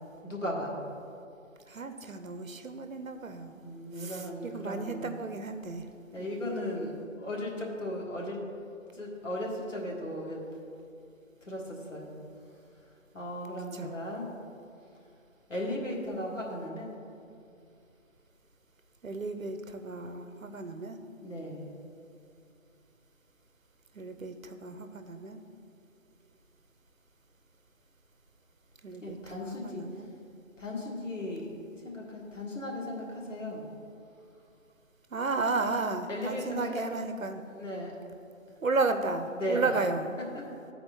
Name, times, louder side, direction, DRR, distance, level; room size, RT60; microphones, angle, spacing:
voice 1, 0.2-0.7 3.5-5.0 6.1-8.4 8.9-10.4 11.5-12.1 13.1-14.3 15.5-16.9 21.2-21.7 29.0-30.1 30.6-33.6 36.1-36.8 37.5-37.9 39.3-39.8 40.3-40.4, left 1 dB, 65° left, -2 dB, 1.8 m, -36 dB
voice 2, 1.7-3.5 3.9-5.8 6.2-6.9 13.7-13.9 19.0-21.0 23.9-25.4 28.8-30.1 35.1-37.4 38.6-40.1, right 3 dB, 80° right, 7 dB, 0.7 m, -33 dB
12.0 x 4.3 x 4.2 m, 2.5 s
figure-of-eight pair, 165°, 40 cm